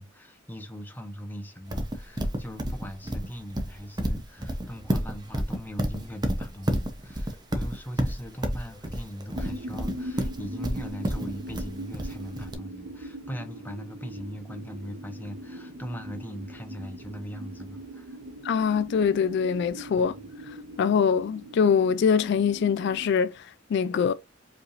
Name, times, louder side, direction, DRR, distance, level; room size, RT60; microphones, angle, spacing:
voice 1, 0.0-18.2 20.0-20.3, equal, 10° left, 0.8 m, -40 dB
Livestock farm animals working animals, 1.7-12.5, right 1 dB, 20° right, 0.7 m, -29 dB
sound 1, 9.3-23.1, right 1 dB, 75° right, 0.6 m, -41 dB
voice 2, 18.4-20.1 20.5-24.1, left 6 dB, 60° left, 0.3 m, -24 dB
4.9 x 3.2 x 2.5 m
head